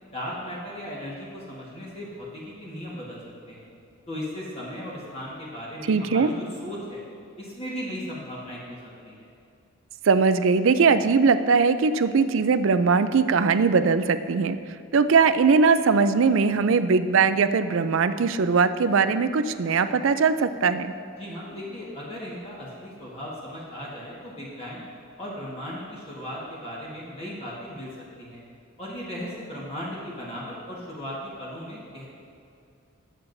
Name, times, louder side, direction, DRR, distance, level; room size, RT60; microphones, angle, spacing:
voice 1, 0.1-3.2 3.4-3.6 4.1-7.0 7.4-8.8 9.0-9.3 21.2-24.8 25.2-27.9 28.2-28.4 28.8-32.1, equal, 30° left, -6 dB, 1.5 m, -36 dB
voice 2, 5.9-6.3 10.0-14.6 14.9-20.9, right 5 dB, 60° right, 11 dB, 0.4 m, -20 dB
19.5 x 7.4 x 2.7 m, 2.6 s
head